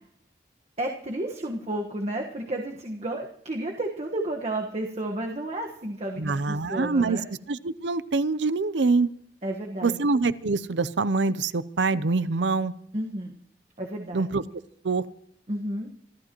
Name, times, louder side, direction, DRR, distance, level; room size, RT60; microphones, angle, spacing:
voice 1, 0.8-7.3 9.4-10.0 12.9-13.4 13.8-14.2 15.5-15.9, right 1 dB, 40° right, 1 dB, 1.4 m, -32 dB
voice 2, 6.2-7.2 7.5-9.1 9.8-12.7 14.1-14.4 14.8-15.1, right 3 dB, 85° right, 16 dB, 0.6 m, -25 dB
26.5 x 13.5 x 3.0 m, 0.68 s
head